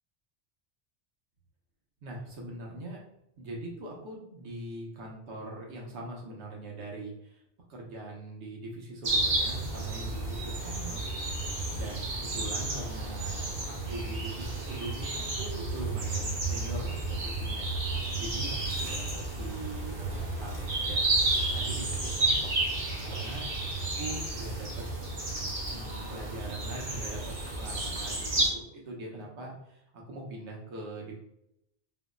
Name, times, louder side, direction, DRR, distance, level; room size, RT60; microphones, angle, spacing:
voice 1, 2.0-3.0 3.4-7.4 7.7-11.1 11.4-17.7 18.2-21.1 21.5-21.9 22.1-22.4 23.0-23.5 23.8-24.8 25.7-31.2, right 2 dB, 80° right, -1 dB, 1.1 m, -42 dB
sound 1, 9.0-28.5, right 2 dB, 60° right, 1.0 m, -31 dB
3.8 x 2.0 x 2.4 m, 0.78 s
omnidirectional pair, 1.2 m